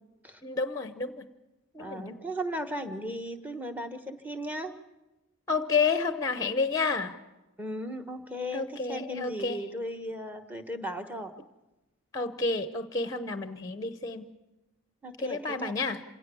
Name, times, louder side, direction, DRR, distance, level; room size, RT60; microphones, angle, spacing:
voice 1, 0.4-1.3 1.7-2.1 5.5-7.2 8.5-9.6 12.1-14.3 15.2-16.0, left 4 dB, 15° left, 10 dB, 0.7 m, -30 dB
voice 2, 1.8-4.7 7.6-11.3 15.0-15.7, equal, 10° right, 7 dB, 1.1 m, -36 dB
27.0 x 17.0 x 7.0 m, 1.0 s
head